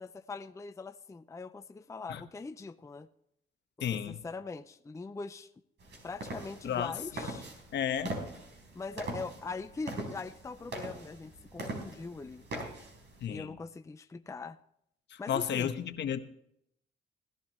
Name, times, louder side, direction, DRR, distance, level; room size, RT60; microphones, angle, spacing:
voice 1, 0.0-3.1 3.9-5.5 6.0-7.5 8.7-12.7 13.3-14.6 15.2-15.7, left 4 dB, 15° left, 9 dB, 0.5 m, -42 dB
voice 2, 3.8-4.2 6.6-7.3 7.7-8.2 13.2-13.6 15.1-16.2, left 9 dB, 65° left, 9 dB, 1.1 m, -33 dB
sound 1, 5.8-13.2, right 1 dB, 60° right, 4.1 m, -42 dB
16.5 x 11.5 x 3.2 m, 0.74 s
cardioid pair, 90°, 20 cm